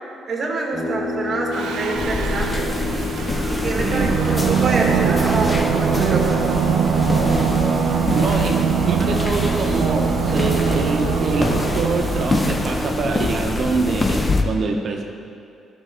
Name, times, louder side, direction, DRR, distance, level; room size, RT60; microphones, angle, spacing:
voice 1, 0.3-2.7 3.5-6.4, right 3 dB, 40° right, -1 dB, 1.7 m, -26 dB
sound 1, 0.7-13.8, left 2 dB, 5° left, 1.1 m, -34 dB
Singing, 1.5-12.9, right 7 dB, 75° right, 0.5 m, -22 dB
sound 2, 2.0-14.4, left 2 dB, 25° left, 0.7 m, -24 dB
voice 2, 3.8-4.3 7.2-7.3 8.1-15.0, right 3 dB, 60° right, 2 dB, 1.0 m, -25 dB
13.0 x 5.4 x 3.7 m, 2.6 s
cardioid pair, 90°, 0 cm